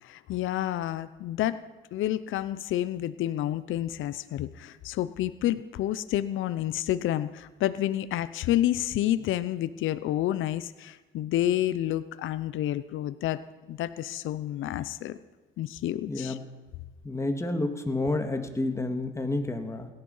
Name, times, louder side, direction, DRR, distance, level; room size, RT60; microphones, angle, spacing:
voice 1, 0.0-1.6 1.9-13.4 13.7-15.2 15.6-16.4, left 13 dB, 80° left, 13 dB, 0.7 m, -29 dB
voice 2, 16.1-16.4 17.0-19.9, left 2 dB, 15° left, 5 dB, 2.0 m, -29 dB
17.5 x 12.0 x 5.6 m, 1.2 s
cardioid pair, 90°, 20 cm